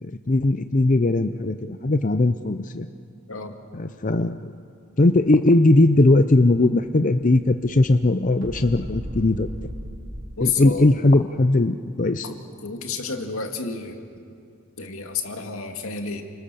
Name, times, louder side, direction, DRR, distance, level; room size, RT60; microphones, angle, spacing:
voice 1, 0.0-2.9 3.7-4.5 5.0-9.5 10.4-12.3, left 2 dB, 35° left, 9 dB, 0.6 m, -19 dB
Explosion, 4.9-10.8, equal, 70° right, 3.0 m, -39 dB
voice 2, 10.4-10.9 12.2-12.4 12.6-14.0 14.8-16.2, left 5 dB, 80° left, 4 dB, 2.4 m, -30 dB
30.0 x 25.5 x 7.0 m, 2.4 s
head